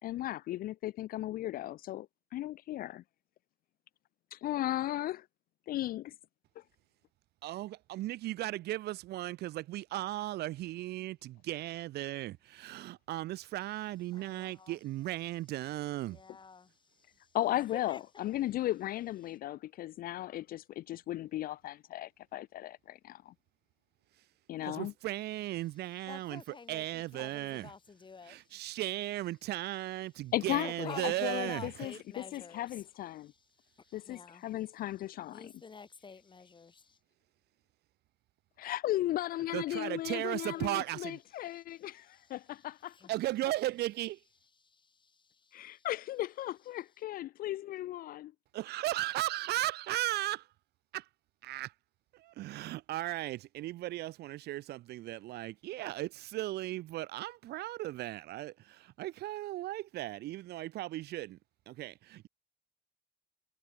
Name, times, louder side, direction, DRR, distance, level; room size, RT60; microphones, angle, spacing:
voice 1, 0.0-2.0 2.3-3.0 4.3-5.3 5.7-6.1 17.3-23.3 24.5-24.9 30.3-33.3 33.9-35.5 38.6-43.0 45.5-48.3, left 14 dB, 60° left, 0.5 m, -36 dB
voice 2, 7.4-16.2 24.6-27.7 28.2-31.7 39.5-41.2 43.1-44.2 48.5-50.5 50.9-51.1 51.4-51.7 52.1-61.4 61.7-62.3, right 16 dB, 75° right, 1.4 m, -36 dB
voice 3, 14.1-14.8 16.1-17.3 17.7-18.0 26.1-28.6 30.6-32.8 33.2-34.4 35.2-37.0 40.5-40.8 41.5-43.1 44.6-45.9, left 5 dB, 30° left, 3.3 m, -50 dB
cardioid pair, 110°, 17 cm